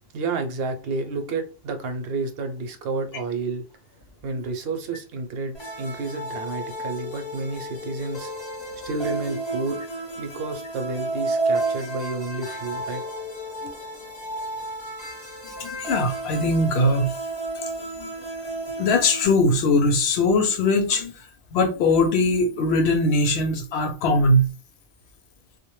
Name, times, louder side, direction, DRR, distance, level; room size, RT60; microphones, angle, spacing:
voice 1, 0.1-3.6 4.2-8.3 8.8-9.8 10.2-13.2, right 3 dB, 70° right, 0.8 m, -30 dB
sound 1, 5.5-19.3, right 2 dB, 30° left, 0.8 m, -32 dB
voice 2, 15.6-17.1 18.0-18.1 18.8-21.1 21.5-24.5, left 2 dB, 85° left, 0.9 m, -21 dB
2.1 x 2.1 x 3.0 m
omnidirectional pair, 1.0 m